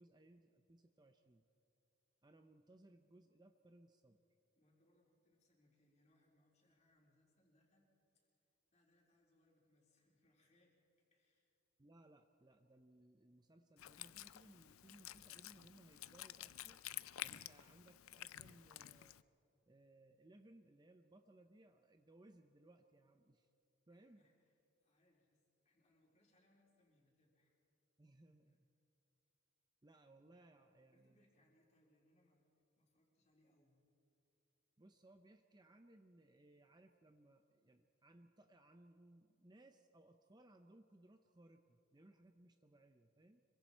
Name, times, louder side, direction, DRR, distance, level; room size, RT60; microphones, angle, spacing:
voice 1, 0.0-1.4 2.2-4.2 11.8-16.8 17.2-19.2 19.7-23.5 23.9-24.2 28.0-28.7 29.8-31.2 34.8-43.4, right 1 dB, 20° right, 6 dB, 0.6 m, -65 dB
voice 2, 4.6-8.3 8.7-10.8 11.1-11.5 23.9-24.5 24.8-27.6 28.5-28.6 30.1-32.4 32.8-33.8, left 1 dB, 35° left, -2 dB, 4.0 m, -77 dB
Wind instrument woodwind instrument, 13.8-19.2, left 13 dB, 80° left, 0.5 m, -51 dB
26.0 x 23.5 x 4.5 m, 2.8 s
head